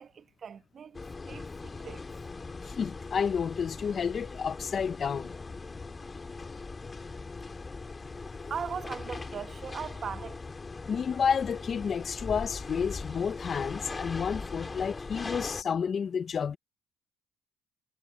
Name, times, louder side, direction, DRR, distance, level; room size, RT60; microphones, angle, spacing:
voice 1, 0.0-2.1 8.5-10.4, right 7 dB, 45° right, 1.1 m, -39 dB
sound 1, 0.9-15.6, left 3 dB, 25° left, 2.7 m, -40 dB
voice 2, 2.6-5.4 10.9-16.6, left 6 dB, 45° left, 0.7 m, -30 dB
supercardioid pair, 85°, 0 cm